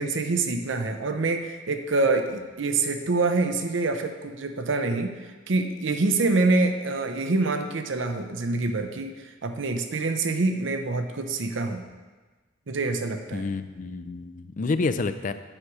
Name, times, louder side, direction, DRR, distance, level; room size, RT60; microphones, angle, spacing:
voice 1, 0.0-11.8 12.7-13.4, right 3 dB, 70° right, 6 dB, 0.7 m, -26 dB
voice 2, 13.3-15.3, left 3 dB, 40° left, 11 dB, 0.4 m, -28 dB
8.8 x 6.4 x 4.7 m, 1.3 s
head